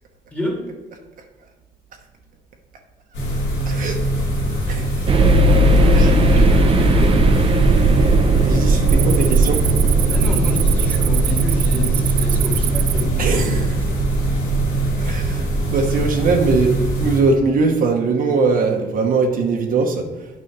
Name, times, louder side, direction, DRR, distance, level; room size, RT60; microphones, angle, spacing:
voice 1, 0.3-0.7 6.0-7.3 10.1-13.7, left 1 dB, 10° left, -1 dB, 2.1 m, -29 dB
sound 1, 3.1-17.2, right 1 dB, 90° left, 2.8 m, -23 dB
voice 2, 3.7-4.0 4.7-4.9 5.9-6.5 8.0-8.1 8.4-9.7 13.2-13.7 15.0-20.1, right 4 dB, 55° right, 2 dB, 1.0 m, -21 dB
Cricket, 4.1-4.5 5.0-5.4 6.0-6.1 6.7-7.3 7.6-7.8 8.2-13.0, right 16 dB, 80° right, 0.4 m, -27 dB
sound 2, 5.1-16.0, right 2 dB, 35° right, 0.7 m, -18 dB
9.0 x 5.4 x 4.7 m, 1.1 s
cardioid pair, 110°, 17 cm